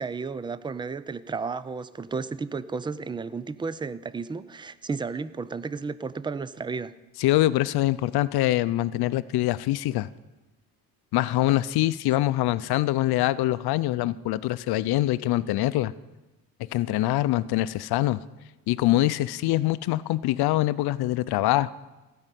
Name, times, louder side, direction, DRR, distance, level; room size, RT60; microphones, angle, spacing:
voice 1, 0.0-6.9, right 4 dB, 10° right, 16 dB, 0.4 m, -33 dB
voice 2, 7.2-10.1 11.1-15.9 16.7-18.2 18.7-21.7, left 15 dB, 70° left, 16 dB, 0.6 m, -24 dB
16.0 x 5.6 x 9.1 m, 1.1 s
cardioid pair, 100°, 39 cm